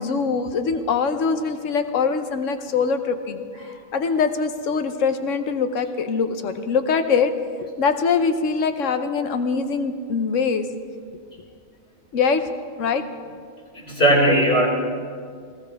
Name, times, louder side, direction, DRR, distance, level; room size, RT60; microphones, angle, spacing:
voice 1, 0.0-3.4 3.9-7.3 7.8-10.7 12.1-12.4 12.8-13.0, left 5 dB, 65° left, 8 dB, 1.2 m, -23 dB
voice 2, 13.7-14.7, equal, 45° left, -2 dB, 4.3 m, -17 dB
19.5 x 16.0 x 3.5 m, 2.1 s
omnidirectional pair, 1.4 m